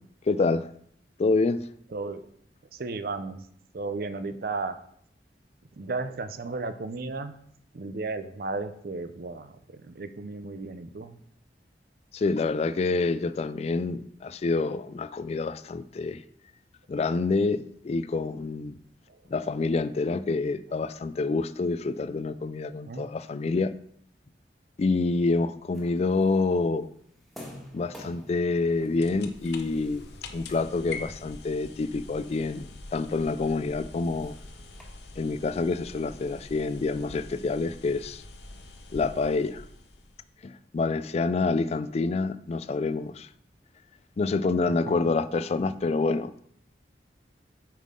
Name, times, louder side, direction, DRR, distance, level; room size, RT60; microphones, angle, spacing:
voice 1, 0.3-0.7 1.2-1.6 12.1-16.2 16.9-18.8 19.3-23.7 24.8-26.9 27.7-30.1 30.3-34.4 35.2-38.2 38.9-39.6 40.4-43.3 44.2-46.3, left 3 dB, 35° left, 14 dB, 0.3 m, -27 dB
voice 2, 1.9-2.2 2.7-3.4 3.7-4.8 5.8-7.4 7.7-11.2 19.1-19.2 22.9-23.1 44.7-45.0, right 3 dB, 55° right, 11 dB, 0.5 m, -34 dB
sound 1, 25.7-34.8, left 1 dB, ahead, 1.6 m, -51 dB
sound 2, 28.6-40.3, left 3 dB, 70° left, 0.8 m, -45 dB
7.4 x 5.6 x 3.7 m, 0.66 s
head